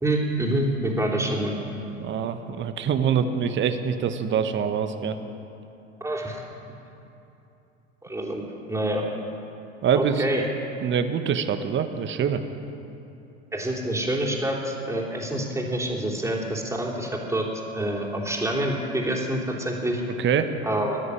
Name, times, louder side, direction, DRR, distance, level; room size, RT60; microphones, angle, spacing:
voice 1, 0.0-1.5 6.0-6.4 8.0-8.4 8.7-9.1 9.9-10.4 13.5-17.5 17.7-20.0 20.6-21.0, right 1 dB, 10° right, -1 dB, 3.2 m, -27 dB
voice 2, 2.0-5.2 9.8-10.2 10.8-12.4 20.1-20.5, right 7 dB, 35° right, 8 dB, 1.1 m, -25 dB
14.5 x 9.5 x 9.9 m, 2.9 s
hypercardioid pair, 75°, 34 cm